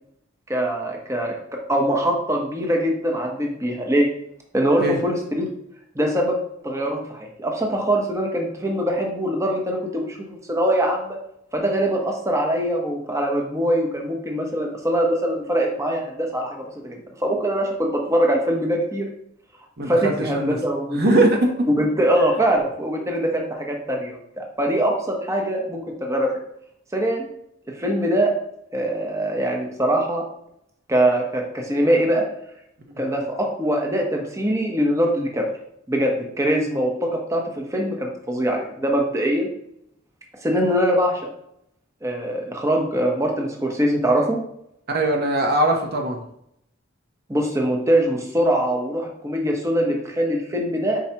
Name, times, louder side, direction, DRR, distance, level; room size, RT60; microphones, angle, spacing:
voice 1, 0.5-4.1 4.5-5.5 5.9-6.4 6.6-11.2 11.5-19.1 19.8-21.0 21.8-26.3 26.9-27.3 27.7-28.3 28.7-30.2 30.9-32.2 33.0-35.5 35.9-39.5 40.4-41.3 42.0-44.4 47.3-51.0, right 1 dB, 15° right, 1 dB, 0.9 m, -23 dB
voice 2, 19.8-20.6 20.9-21.7 44.9-46.2, right 1 dB, 55° right, 2 dB, 0.9 m, -20 dB
7.8 x 4.6 x 2.9 m, 0.75 s
head